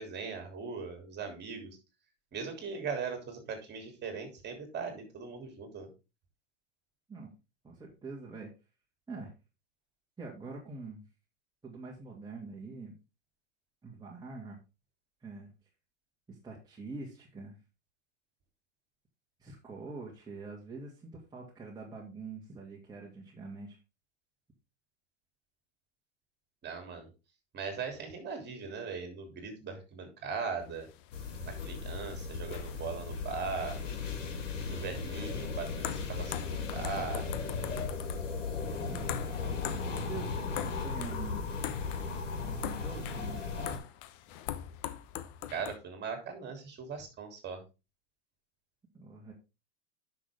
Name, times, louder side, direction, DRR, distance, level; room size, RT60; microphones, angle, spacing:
voice 1, 0.0-1.8 2.3-5.9 26.6-27.1 27.5-30.9 31.4-33.9 34.7-37.3 45.5-47.6, right 5 dB, 30° right, 5 dB, 3.2 m, -39 dB
voice 2, 7.6-8.5 9.1-9.3 10.2-11.0 11.6-13.0 13.8-14.6 15.2-15.5 16.3-17.6 19.4-23.8 38.8-39.1 39.7-41.4 42.4-43.8 48.9-49.3, right 3 dB, 10° right, -4 dB, 2.4 m, -45 dB
sound 1, 30.6-45.8, left 12 dB, 45° left, 0.9 m, -44 dB
sound 2, 31.1-43.8, left 4 dB, 80° left, 2.2 m, -36 dB
9.9 x 6.2 x 3.6 m, 0.28 s
hypercardioid pair, 105°, 37 cm